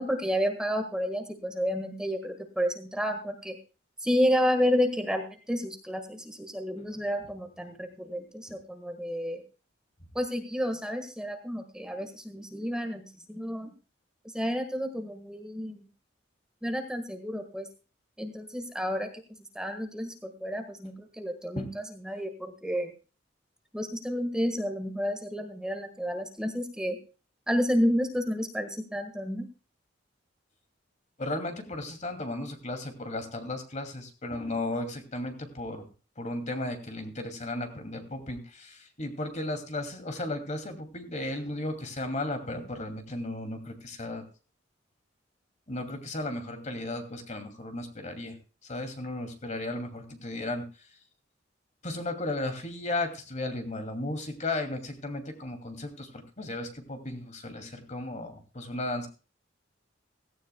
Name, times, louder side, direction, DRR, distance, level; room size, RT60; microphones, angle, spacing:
voice 1, 0.0-3.6 4.0-9.4 10.1-13.7 14.3-15.8 16.6-17.7 18.2-19.1 19.5-22.9 23.7-27.0 27.5-29.5, equal, 5° right, 5 dB, 1.5 m, -30 dB
voice 2, 31.2-35.9 36.2-44.2 45.7-48.4 48.6-50.6 51.8-59.1, left 2 dB, 40° left, 6 dB, 2.5 m, -35 dB
16.5 x 16.0 x 2.2 m, 0.35 s
head